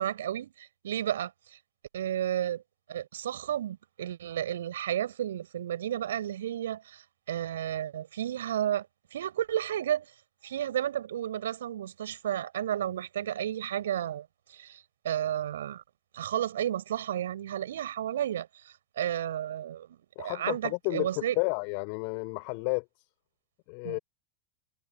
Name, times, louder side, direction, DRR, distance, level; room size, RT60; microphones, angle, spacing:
voice 1, 0.0-1.6 1.9-2.6 2.9-10.1 10.4-15.8 16.1-21.4 23.8-24.0, right 11 dB, 60° right, 7.3 m, -32 dB
voice 2, 20.1-22.8 23.7-24.0, left 40 dB or more, 45° left, 6.5 m, -31 dB
figure-of-eight pair, 90°, 0 cm